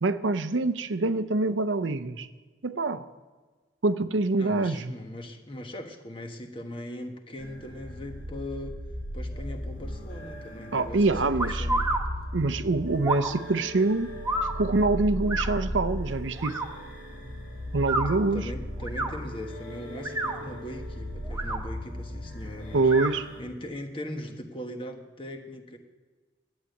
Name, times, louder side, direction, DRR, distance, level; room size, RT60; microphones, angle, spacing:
voice 1, 0.0-2.3 2.6-3.1 3.8-4.9 10.7-11.7 12.3-14.1 14.5-16.6 17.7-18.5 22.7-23.3, right 3 dB, 90° right, 11 dB, 0.7 m, -25 dB
voice 2, 4.4-8.8 9.1-12.0 18.3-22.9 23.4-25.8, left 1 dB, 30° left, 5 dB, 1.3 m, -40 dB
sound 1, 7.4-23.4, equal, 90° left, 2.5 m, -36 dB
sound 2, 11.4-12.0 13.0-13.3 14.2-14.5 15.3-15.5 16.4-16.7 17.8-18.1 18.8-19.1 19.9-20.4 21.2-21.6 22.9-23.1, right 2 dB, 15° right, 1.1 m, -29 dB
11.5 x 8.3 x 9.1 m, 1.4 s
head